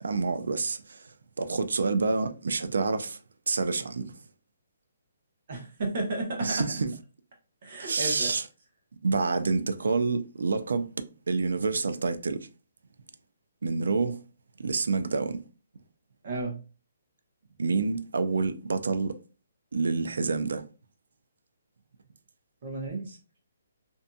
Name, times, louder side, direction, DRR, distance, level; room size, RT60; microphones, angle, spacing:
voice 1, 0.0-3.2 3.5-4.2 6.4-6.9 7.8-8.4 9.0-10.9 11.3-12.5 13.6-14.2 14.6-15.4 17.6-19.1 19.7-20.6, right 4 dB, 85° right, 0.3 m, -28 dB
voice 2, 5.5-6.5 7.6-8.3 16.2-16.6 22.6-23.2, right 2 dB, 40° right, 0.8 m, -33 dB
2.6 x 2.5 x 2.2 m
hypercardioid pair, 175°, 0 cm